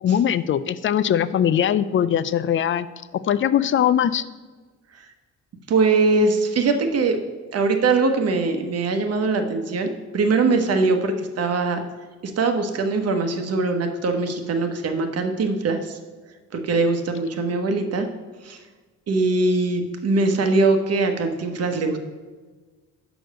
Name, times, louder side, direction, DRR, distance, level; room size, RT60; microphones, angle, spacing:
voice 1, 0.0-2.9 3.1-4.2, left 9 dB, 40° left, 15 dB, 0.4 m, -21 dB
voice 2, 5.7-7.2 7.5-11.8 12.2-16.0 16.5-18.1 18.4-18.6 19.1-22.0, right 3 dB, 55° right, 6 dB, 1.1 m, -22 dB
6.1 x 5.1 x 6.6 m, 1.3 s
cardioid pair, 90°, 30 cm